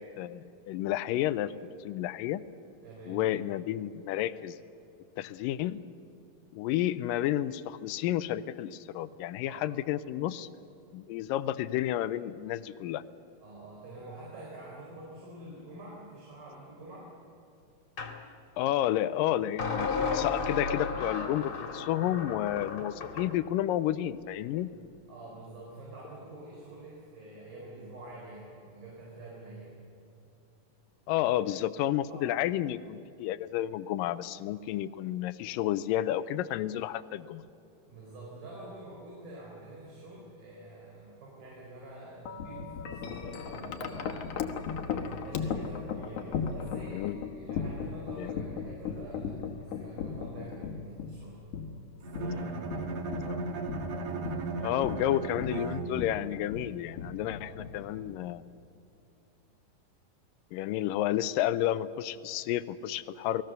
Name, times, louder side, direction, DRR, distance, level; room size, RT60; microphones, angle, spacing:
voice 1, 0.0-1.5 1.8-2.4 3.1-4.6 5.2-5.8 6.5-10.5 10.9-13.0 18.6-24.7 31.1-37.4 46.9-47.2 48.2-48.3 53.2-53.4 54.6-58.4 60.5-63.4, left 13 dB, 80° left, 14 dB, 2.1 m, -31 dB
voice 2, 2.8-3.2 9.5-9.7 13.4-17.1 24.5-24.7 25.1-29.7 32.1-32.3 37.9-44.2 44.8-51.5 51.9-52.9 57.4-57.6, right 2 dB, 70° right, -4 dB, 6.5 m, -47 dB
sound 1, 18.0-18.2 19.6-23.3, left 5 dB, 40° left, 2.4 m, -33 dB
Wind chime, 42.3-58.4, left 6 dB, 65° left, 2.4 m, -37 dB
Bowed string instrument, 52.0-56.3, right 3 dB, 50° right, 2.6 m, -36 dB
29.5 x 20.0 x 6.7 m, 2.8 s
omnidirectional pair, 4.4 m